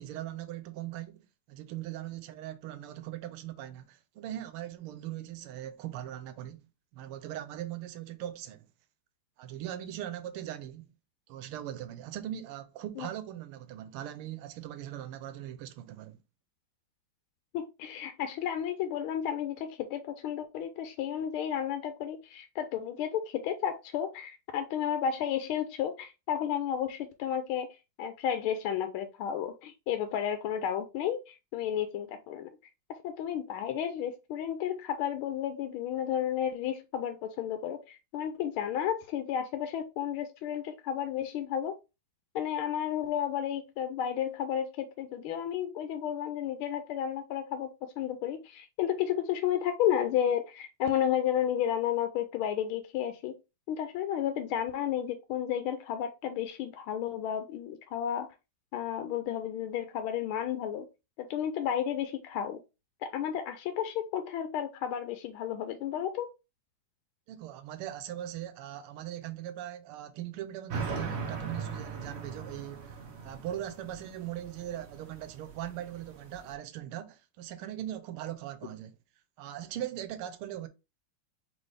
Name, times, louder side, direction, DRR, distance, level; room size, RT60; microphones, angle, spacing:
voice 1, 0.0-6.7 6.9-8.7 9.4-10.9 11.3-16.2 67.3-73.0 73.2-79.0 79.4-80.7, right 12 dB, 85° right, 1.5 m, -40 dB
voice 2, 17.5-27.7 28.0-32.6 32.9-41.8 42.3-53.4 53.7-58.3 58.7-60.9 61.2-62.6 63.0-66.3, left 9 dB, 80° left, 1.4 m, -32 dB
sound 1, 70.7-76.5, right 5 dB, 65° right, 0.6 m, -39 dB
4.0 x 3.7 x 3.2 m
omnidirectional pair, 2.3 m